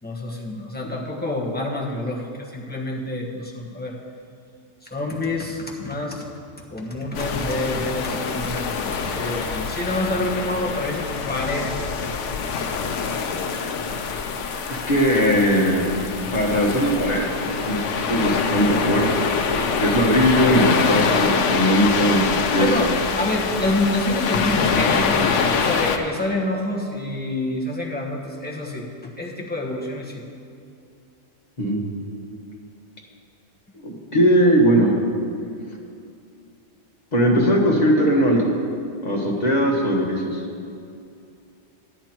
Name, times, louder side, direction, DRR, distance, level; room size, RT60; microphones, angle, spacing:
voice 1, 0.0-4.0 4.8-6.3 6.7-11.7 22.6-22.9 23.2-30.2, left 2 dB, 10° left, -2 dB, 1.2 m, -27 dB
sound 1, 7.1-26.0, left 5 dB, 80° left, 1.0 m, -25 dB
voice 2, 14.7-15.9 16.3-17.3 17.6-22.9 31.6-31.8 33.8-35.0 37.1-38.5 39.0-40.4, equal, 35° left, -2 dB, 1.6 m, -19 dB
10.0 x 9.6 x 4.5 m, 2.5 s
omnidirectional pair, 1.2 m